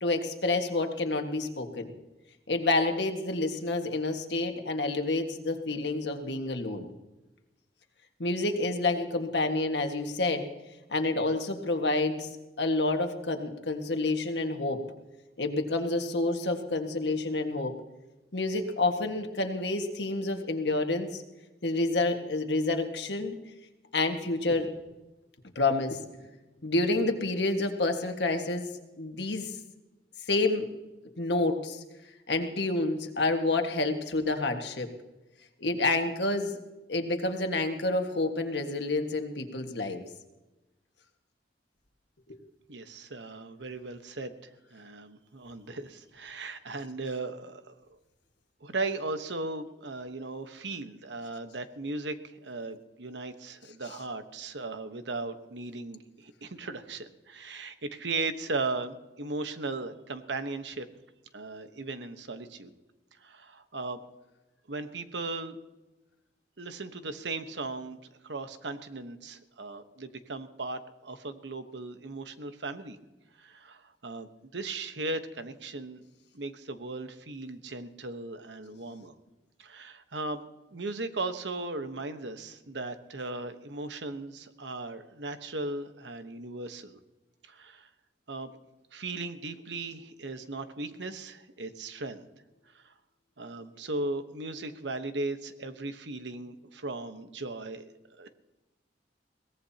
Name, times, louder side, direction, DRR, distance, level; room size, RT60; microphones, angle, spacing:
voice 1, 0.0-1.9 2.5-6.9 8.2-10.5 10.9-12.3 12.6-14.8 15.4-17.8 18.3-21.2 21.6-23.4 23.9-24.7 25.6-26.0 26.6-28.7 29.0-29.5 30.3-30.6 31.2-31.8 32.3-34.9 35.6-36.6 36.9-40.0 42.3-42.4, left 2 dB, 75° left, 5 dB, 1.7 m, -28 dB
voice 2, 42.7-47.7 48.6-60.9 61.3-62.7 63.2-64.0 64.7-65.6 66.6-73.0 73.4-76.0 76.3-79.1 79.6-80.4 80.7-87.0 87.4-87.9 88.3-88.5 88.9-92.3 92.7-92.9 93.4-97.9 98.2-98.4, right 3 dB, 85° right, 9 dB, 1.1 m, -37 dB
22.5 x 17.5 x 2.9 m, 1.1 s
head